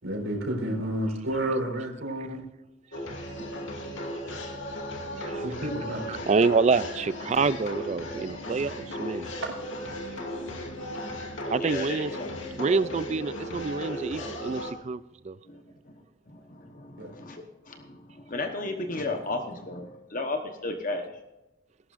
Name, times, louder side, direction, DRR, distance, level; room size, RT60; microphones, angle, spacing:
voice 1, 0.0-2.4 5.3-6.0 9.4-9.5 17.0-17.1, right 1 dB, 70° right, 0 dB, 4.5 m, -30 dB
sound 1, 2.9-14.7, left 1 dB, 70° left, 2.4 m, -36 dB
voice 2, 5.2-5.5 6.1-9.3 11.5-12.1 12.6-15.4, right 4 dB, 35° right, 16 dB, 0.3 m, -27 dB
voice 3, 11.6-12.4 15.5-15.6 16.3-21.1, left 2 dB, 40° left, 4 dB, 1.1 m, -34 dB
19.5 x 11.5 x 2.6 m, 0.99 s
head